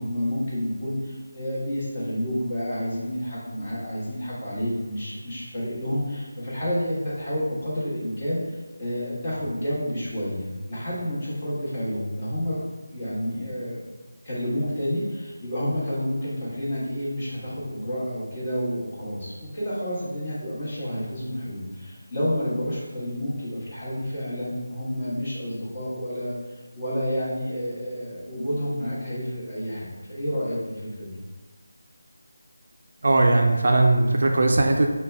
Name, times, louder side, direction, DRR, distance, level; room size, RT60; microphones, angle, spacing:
voice 1, 0.0-12.6 12.9-13.9 14.2-31.2, equal, 30° left, -9 dB, 1.2 m, -30 dB
voice 2, 33.0-34.9, right 2 dB, 55° right, 3 dB, 0.3 m, -19 dB
3.9 x 2.2 x 3.2 m, 1.3 s
figure-of-eight pair, 170°, 0 cm